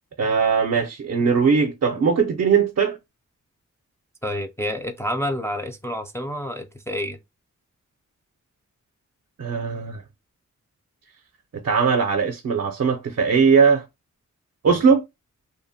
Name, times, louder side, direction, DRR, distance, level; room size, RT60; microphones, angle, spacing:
voice 1, 0.2-3.0 9.4-10.0 11.6-13.8 14.6-15.0, right 5 dB, 55° right, 0.5 m, -19 dB
voice 2, 4.2-7.2, equal, 10° left, 0.3 m, -28 dB
2.7 x 2.0 x 2.7 m
wide cardioid pair, 75°, 31 cm